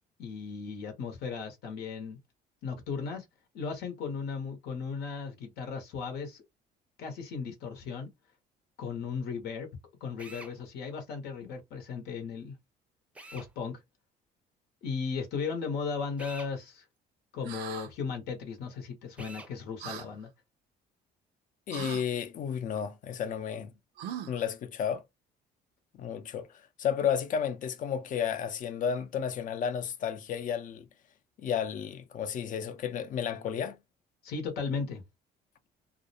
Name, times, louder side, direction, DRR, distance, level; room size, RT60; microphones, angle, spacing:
voice 1, 0.2-2.2 2.6-3.2 3.5-6.4 7.0-8.1 8.8-9.7 10.0-12.5 13.3-13.8 14.8-16.8 17.3-20.3 34.2-35.0, left 5 dB, 80° left, 0.8 m, -36 dB
Drill, 10.2-10.5 13.1-13.5 16.2-16.5 19.2-19.5, right 1 dB, 5° right, 0.5 m, -46 dB
sound 1, 17.4-17.9 19.8-20.1 21.7-22.0 24.0-24.5, right 9 dB, 90° right, 0.4 m, -40 dB
voice 2, 21.7-23.7 24.3-25.0 26.0-30.9 31.4-33.8, left 8 dB, 50° left, 0.5 m, -32 dB
2.5 x 2.0 x 2.6 m
cardioid pair, 110°, 17 cm